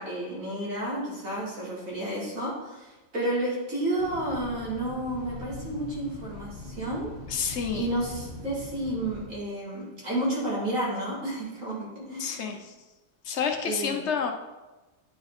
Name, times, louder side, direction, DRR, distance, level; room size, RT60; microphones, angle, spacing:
voice 1, 0.0-12.6 13.6-14.0, right 1 dB, 80° right, -7 dB, 3.3 m, -31 dB
sound 1, 4.0-9.3, left 2 dB, 35° right, 2.9 m, -41 dB
voice 2, 7.3-7.9 12.2-12.7 13.2-14.3, left 7 dB, 60° left, 4 dB, 1.0 m, -29 dB
10.0 x 5.2 x 4.2 m, 1.1 s
omnidirectional pair, 1.4 m